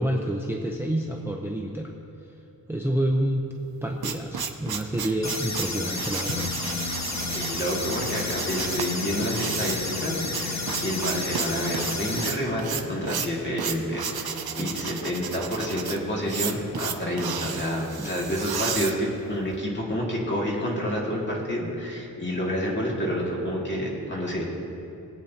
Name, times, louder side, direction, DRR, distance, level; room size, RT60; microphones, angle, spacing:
voice 1, 0.0-1.9 2.7-3.5 3.8-6.5 14.6-14.7 18.0-18.2, right 1 dB, 5° right, 0 dB, 0.7 m, -28 dB
sound 1, 3.6-19.6, right 7 dB, 75° right, 0.7 m, -33 dB
sound 2, 5.2-12.3, left 2 dB, 45° left, 1.2 m, -32 dB
sound 3, 6.3-17.0, left 8 dB, 85° left, 0.8 m, -40 dB
voice 2, 7.3-24.4, equal, 30° left, -4 dB, 2.2 m, -29 dB
21.0 x 8.3 x 2.8 m, 2.8 s
wide cardioid pair, 110°, 38 cm